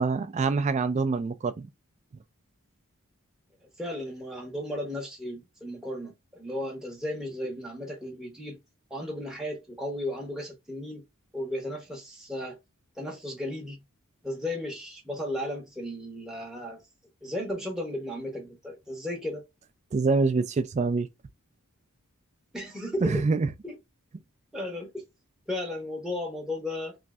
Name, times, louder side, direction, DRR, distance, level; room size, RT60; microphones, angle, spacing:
voice 1, 0.0-1.7 19.9-21.1 23.0-23.5, right 4 dB, 30° right, 0.3 m, -25 dB
voice 2, 3.8-8.6 8.9-11.0 11.3-12.6 12.9-13.8 14.2-16.8 17.2-19.4 22.5-23.2 23.6-23.8 24.5-25.0 25.5-27.0, left 1 dB, 5° right, 0.7 m, -35 dB
3.1 x 2.6 x 2.3 m
head